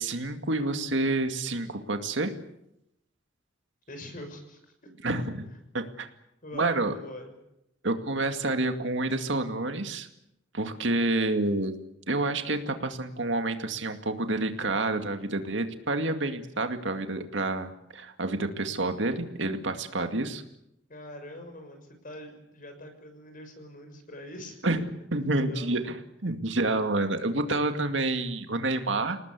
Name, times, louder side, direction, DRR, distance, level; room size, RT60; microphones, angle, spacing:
voice 1, 0.0-2.3 5.0-5.5 5.7-6.1 6.5-6.9 7.8-10.1 10.5-11.7 12.1-20.4 24.6-24.8 25.1-26.0 26.2-29.2, right 2 dB, 70° right, 6 dB, 2.2 m, -28 dB
voice 2, 3.9-4.9 5.4-5.5 6.4-7.4 20.9-24.6 25.3-25.7, left 1 dB, 45° left, 6 dB, 6.4 m, -44 dB
28.5 x 19.0 x 8.4 m, 0.84 s
head